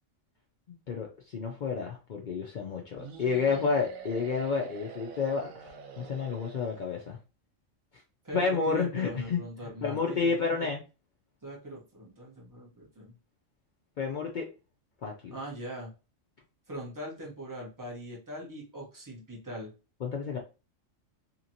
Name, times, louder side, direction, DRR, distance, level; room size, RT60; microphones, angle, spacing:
voice 1, 1.3-5.5 6.0-7.2 8.3-9.4 9.8-10.8 14.0-14.5 15.0-15.4 20.0-20.4, left 5 dB, 70° left, 1 dB, 0.4 m, -30 dB
sound 1, 3.0-7.2, right 6 dB, 85° right, 1.0 m, -46 dB
voice 2, 8.2-10.7 11.4-13.2 15.3-15.9 16.7-19.7, right 1 dB, 15° right, -2 dB, 0.8 m, -41 dB
2.9 x 2.9 x 2.6 m, 0.32 s
omnidirectional pair, 1.4 m